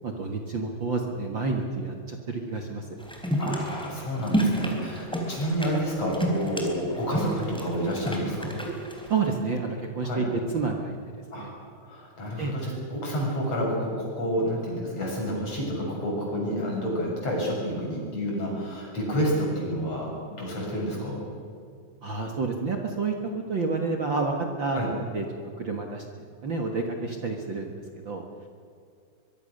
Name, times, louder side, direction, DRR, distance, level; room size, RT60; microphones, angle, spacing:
voice 1, 0.0-2.9 9.1-11.0 11.4-11.5 12.4-12.5 22.0-23.1 23.5-24.8 25.1-25.2 25.6-26.0 26.4-27.7 28.0-28.2, right 4 dB, 45° right, 2 dB, 2.0 m, -29 dB
sound 1, 3.0-9.3, right 1 dB, ahead, 3.7 m, -30 dB
voice 2, 3.4-8.6 10.0-10.3 11.3-11.5 11.8-21.2 24.7-24.9, equal, 55° left, -3 dB, 8.4 m, -29 dB
24.5 x 22.5 x 6.6 m, 2.3 s
omnidirectional pair, 3.5 m